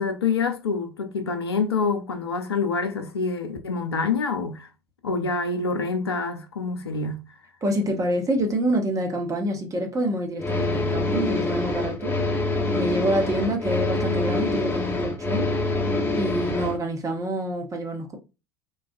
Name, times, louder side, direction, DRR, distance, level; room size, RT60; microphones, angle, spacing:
voice 1, 0.0-4.7 5.0-7.2, left 4 dB, 90° left, 0.5 m, -26 dB
voice 2, 7.6-12.2 12.7-15.5 16.2-18.2, right 1 dB, 25° right, 1.0 m, -27 dB
sound 1, 10.4-16.8, left 2 dB, 15° left, 1.1 m, -25 dB
3.9 x 2.3 x 2.5 m
hypercardioid pair, 75°, 13 cm